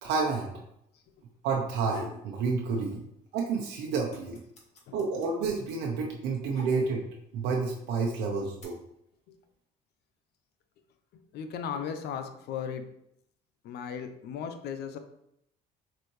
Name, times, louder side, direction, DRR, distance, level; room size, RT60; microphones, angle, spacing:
voice 1, 0.0-0.5 1.4-3.0 3.3-4.4 4.9-7.0 7.3-8.8, right 4 dB, 85° right, 0 dB, 0.9 m, -29 dB
sound 1, 1.9-2.3 2.7-3.4 3.6-7.2 8.0-8.6, left 1 dB, 45° left, 1.9 m, -47 dB
voice 2, 4.9-5.2 6.4-6.5 9.3-9.4 11.3-12.8 13.6-15.0, left 7 dB, 75° left, 8 dB, 0.8 m, -37 dB
6.9 x 4.2 x 3.2 m, 0.76 s
cardioid pair, 110°, 17 cm